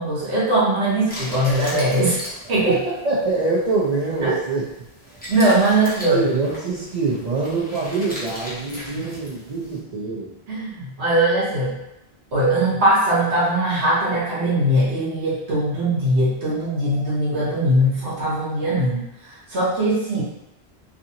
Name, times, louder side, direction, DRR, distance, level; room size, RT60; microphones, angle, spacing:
voice 1, 0.0-2.2 2.5-2.8 4.2-4.4 5.3-6.3 8.9-9.1 10.5-11.8 12.3-20.2, right 1 dB, 85° right, -8 dB, 1.0 m, -20 dB
sound 1, 1.1-9.8, equal, 10° left, 0.6 m, -37 dB
voice 2, 2.7-4.7 6.1-10.3, right 3 dB, 50° right, -6 dB, 0.5 m, -24 dB
2.5 x 2.5 x 2.7 m, 0.90 s
omnidirectional pair, 1.0 m